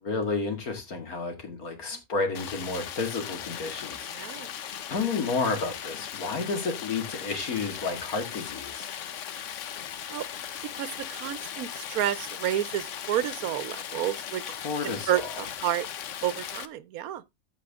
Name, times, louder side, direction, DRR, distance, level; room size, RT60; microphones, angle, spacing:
voice 1, 0.0-4.1 4.9-8.9 14.6-15.2, left 4 dB, 80° left, 2.5 m, -31 dB
Stream, 2.3-16.7, left 9 dB, 65° left, 1.0 m, -38 dB
voice 2, 4.1-4.5 10.1-10.3 10.7-14.4 14.8-15.9 16.2-17.2, right 11 dB, 80° right, 1.1 m, -30 dB
13.5 x 5.0 x 3.5 m
omnidirectional pair, 1.5 m